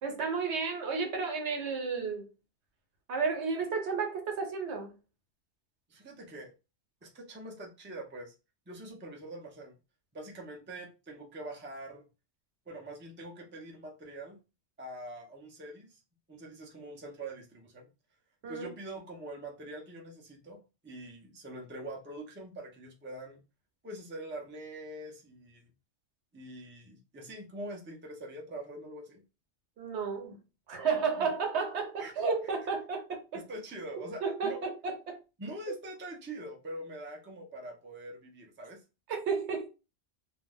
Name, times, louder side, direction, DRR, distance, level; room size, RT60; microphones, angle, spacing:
voice 1, 0.0-2.3 3.1-4.9 18.4-18.7 29.8-30.4 30.7-33.4 33.9-35.2 39.1-39.7, right 5 dB, 75° right, 1.0 m, -32 dB
voice 2, 5.9-6.5 7.0-8.3 8.7-9.7 10.1-12.0 12.7-14.4 14.8-16.0 16.3-17.9 18.5-23.4 23.8-25.7 26.3-29.2 31.2-31.3 32.0-32.1 32.4-32.5 33.3-34.6 35.4-38.8, right 1 dB, 20° right, 0.3 m, -44 dB
2.4 x 2.1 x 3.4 m
omnidirectional pair, 1.2 m